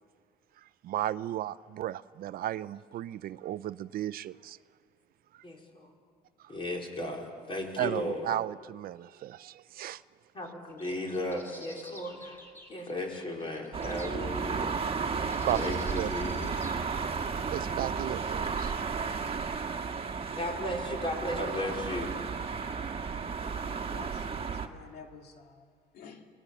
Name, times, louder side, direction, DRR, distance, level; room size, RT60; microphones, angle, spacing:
voice 1, 0.8-4.6 7.8-10.0 15.4-16.1 17.5-18.7, right 13 dB, 60° right, 17 dB, 0.5 m, -34 dB
voice 2, 5.4-5.9 6.5-8.2 10.3-12.4 12.7-14.7 15.5-16.5 20.3-22.1, left 1 dB, 30° left, 1 dB, 4.4 m, -35 dB
sound 1, 10.7-14.4 15.3-16.8, equal, 15° left, 3.5 m, -51 dB
sound 2, 13.7-24.7, right 5 dB, 35° right, 1.5 m, -33 dB
voice 3, 23.9-26.3, left 6 dB, 65° left, 4 dB, 2.2 m, -51 dB
25.5 x 19.0 x 7.1 m, 2.1 s
cardioid pair, 110°, 17 cm